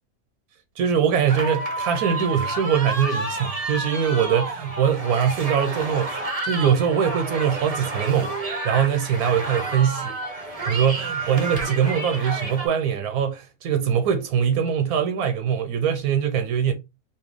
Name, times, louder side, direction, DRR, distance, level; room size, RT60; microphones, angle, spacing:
voice 1, 0.8-10.2 10.7-16.7, right 8 dB, 75° right, 1.1 m, -22 dB
sound 1, 1.3-12.7, right 2 dB, 35° right, 0.6 m, -30 dB
4.3 x 2.3 x 3.5 m
omnidirectional pair, 1.7 m